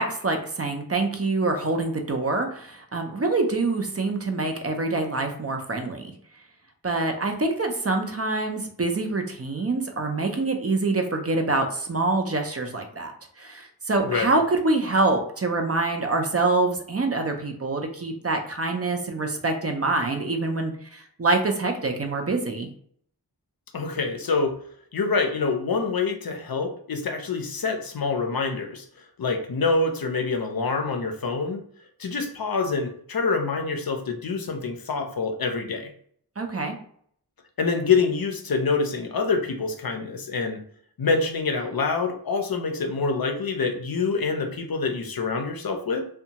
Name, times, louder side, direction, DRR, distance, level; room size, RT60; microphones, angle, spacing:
voice 1, 0.0-6.1 6.8-13.1 13.4-22.7 36.4-36.8, right 3 dB, 35° right, 4 dB, 0.5 m, -25 dB
voice 2, 14.0-14.4 23.7-24.5 24.9-31.6 32.0-35.9 37.6-40.6 41.0-46.0, left 4 dB, 60° left, 4 dB, 0.5 m, -26 dB
2.6 x 2.2 x 2.8 m, 0.63 s
wide cardioid pair, 45°, 41 cm